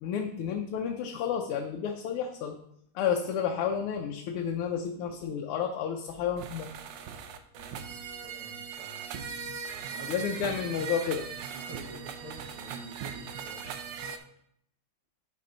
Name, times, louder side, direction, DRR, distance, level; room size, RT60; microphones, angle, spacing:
voice 1, 0.0-2.6 3.0-6.7 10.1-11.3, left 7 dB, 85° left, 3 dB, 1.6 m, -31 dB
sound 1, 6.1-14.2, right 6 dB, 70° right, 1.2 m, -39 dB
voice 2, 8.2-9.0 9.9-10.7 11.5-13.7, right 3 dB, 85° right, 1 dB, 2.3 m, -48 dB
11.0 x 4.4 x 3.9 m, 0.72 s
omnidirectional pair, 2.4 m